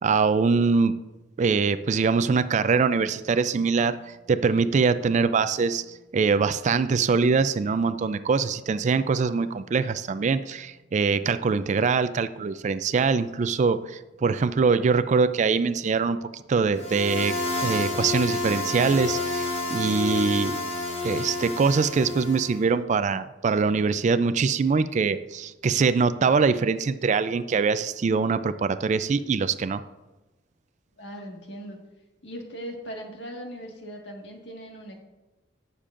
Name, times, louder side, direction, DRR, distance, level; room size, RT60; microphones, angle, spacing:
voice 1, 0.0-0.9 1.4-5.8 6.1-20.6 21.0-29.8, right 5 dB, 40° right, 13 dB, 0.3 m, -23 dB
sound 1, 16.8-22.6, left 3 dB, 35° left, 1.3 m, -29 dB
voice 2, 31.0-31.8 32.2-35.0, equal, 70° left, 1 dB, 1.7 m, -39 dB
17.0 x 6.8 x 2.5 m, 1.1 s
head